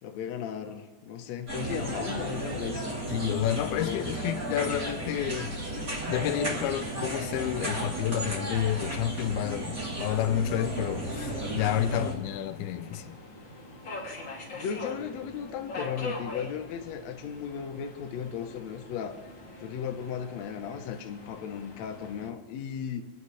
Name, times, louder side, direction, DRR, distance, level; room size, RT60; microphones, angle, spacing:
voice 1, 0.0-2.9 3.6-4.1 14.5-19.2 19.6-23.1, left 8 dB, 70° left, 1.7 m, -36 dB
sound 1, 1.5-12.1, right 1 dB, 25° right, 3.0 m, -34 dB
voice 2, 3.1-5.6 6.1-13.2, left 11 dB, 90° left, 2.5 m, -30 dB
Subway metro underground, 9.7-22.3, left 3 dB, 40° left, 2.1 m, -43 dB
27.5 x 9.9 x 3.2 m
omnidirectional pair, 4.3 m